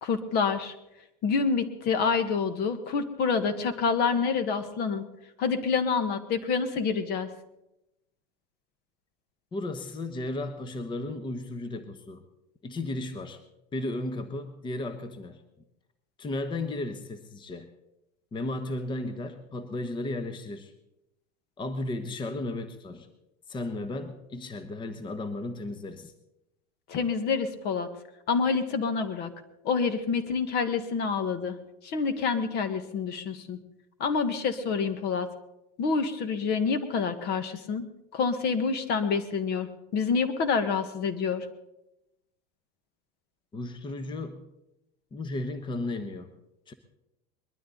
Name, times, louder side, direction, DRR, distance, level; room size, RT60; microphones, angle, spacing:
voice 1, 0.0-0.7 1.2-5.0 5.4-7.3 26.9-27.9 28.3-29.3 29.6-31.6 31.8-33.6 34.0-35.3 35.8-37.8 38.1-41.4, left 5 dB, 50° left, 11 dB, 1.7 m, -27 dB
voice 2, 9.5-12.2 12.6-13.4 13.7-15.4 16.2-17.7 18.3-20.7 21.6-23.1 23.5-26.1 43.5-44.4 45.1-46.3 46.7-46.8, left 2 dB, 20° left, 9 dB, 1.2 m, -34 dB
21.0 x 12.5 x 4.0 m, 0.89 s
supercardioid pair, 115°, 21 cm